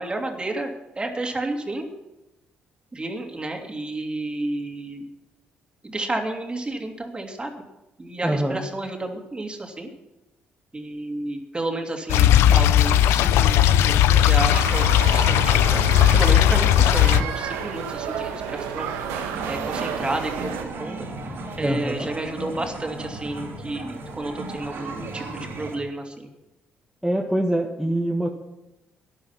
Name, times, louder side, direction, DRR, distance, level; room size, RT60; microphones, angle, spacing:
voice 1, 0.0-1.9 2.9-5.0 5.8-7.5 8.0-9.9 10.7-15.8 16.1-18.9 19.4-20.5 20.8-21.1 21.6-26.3, right 2 dB, 25° right, 3 dB, 2.9 m, -31 dB
voice 2, 8.2-8.6 21.6-22.1 27.0-28.3, right 1 dB, 5° right, 0 dB, 1.7 m, -24 dB
sound 1, 12.1-17.2, left 11 dB, 80° left, 0.6 m, -17 dB
sound 2, 14.5-20.6, right 7 dB, 90° right, 1.4 m, -31 dB
sound 3, 19.3-25.8, right 3 dB, 65° right, 3.0 m, -35 dB
13.0 x 10.5 x 5.9 m, 0.96 s
supercardioid pair, 60°, 4 cm